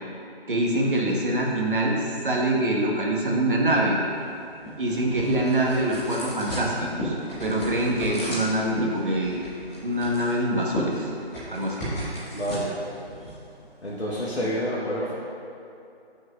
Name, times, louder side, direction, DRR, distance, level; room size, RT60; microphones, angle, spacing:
voice 1, 0.5-2.0 2.2-4.0 4.8-9.4 9.8-11.1 11.5-11.8 14.4-14.5, right 1 dB, 55° right, -2 dB, 1.5 m, -24 dB
sound 1, 4.1-14.3, equal, 15° left, 1.7 m, -35 dB
voice 2, 12.3-12.8 13.8-15.1, equal, 90° left, -7 dB, 1.6 m, -28 dB
13.0 x 6.2 x 2.5 m, 2.6 s
figure-of-eight pair, 165°, 32 cm